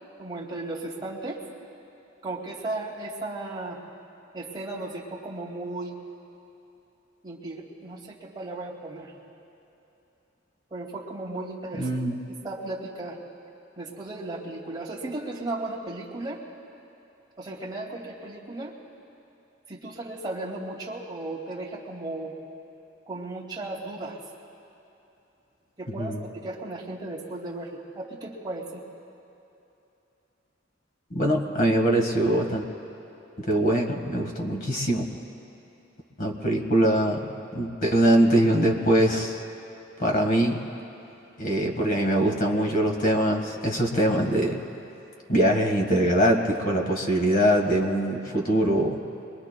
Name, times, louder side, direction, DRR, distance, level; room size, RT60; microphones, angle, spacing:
voice 1, 0.2-1.4 2.2-3.8 4.3-6.0 7.2-9.1 10.7-11.9 12.4-13.2 13.8-16.4 17.4-18.7 19.7-22.3 23.1-24.2 25.8-26.1 26.4-28.8, right 2 dB, 25° right, -3 dB, 2.2 m, -35 dB
voice 2, 11.7-12.1 26.0-26.2 31.1-32.6 33.4-35.0 36.2-37.2 37.5-39.4 40.0-40.6 41.4-44.6 45.3-49.0, right 1 dB, 50° left, 3 dB, 1.6 m, -23 dB
25.5 x 22.5 x 2.3 m, 2.9 s
head